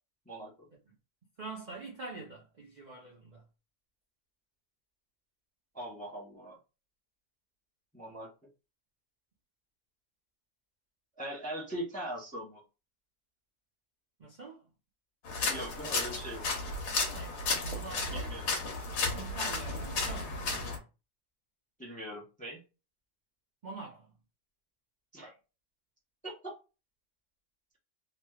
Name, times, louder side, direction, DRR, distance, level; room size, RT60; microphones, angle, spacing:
voice 1, 0.3-0.7 5.7-6.6 7.9-8.3 11.2-12.6 15.5-16.4 18.1-18.5 21.8-22.6 25.1-25.3 26.2-26.6, right 1 dB, 10° left, 0.6 m, -41 dB
voice 2, 1.4-3.4 14.2-14.7 17.1-18.3 19.1-20.8 23.6-24.1, right 3 dB, 45° right, 0.5 m, -45 dB
Footsteps Muddy D, 15.2-20.8, left 3 dB, 85° left, 1.4 m, -33 dB
3.1 x 3.0 x 2.3 m
omnidirectional pair, 1.6 m